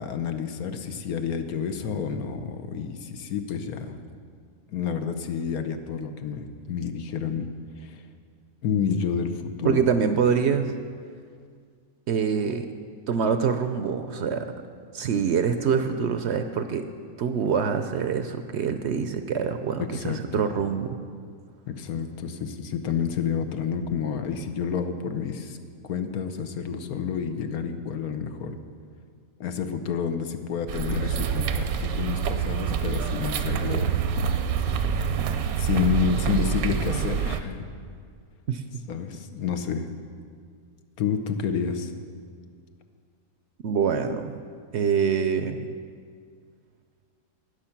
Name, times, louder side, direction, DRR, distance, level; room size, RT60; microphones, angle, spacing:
voice 1, 0.0-4.0 4.7-7.5 7.8-8.0 8.6-9.8 19.8-20.2 21.7-25.6 25.8-28.6 29.4-34.0 35.6-37.7 38.9-39.9 41.0-41.9, left 7 dB, 85° left, 8 dB, 1.3 m, -29 dB
voice 2, 9.6-10.7 12.1-12.7 13.1-14.5 14.9-16.9 17.2-21.0 38.5-38.6 43.6-44.3 44.7-45.7, right 6 dB, 60° right, 8 dB, 0.7 m, -25 dB
sound 1, 30.7-37.4, right 7 dB, 80° right, 1.1 m, -26 dB
19.0 x 6.6 x 5.8 m, 2.1 s
omnidirectional pair, 1.5 m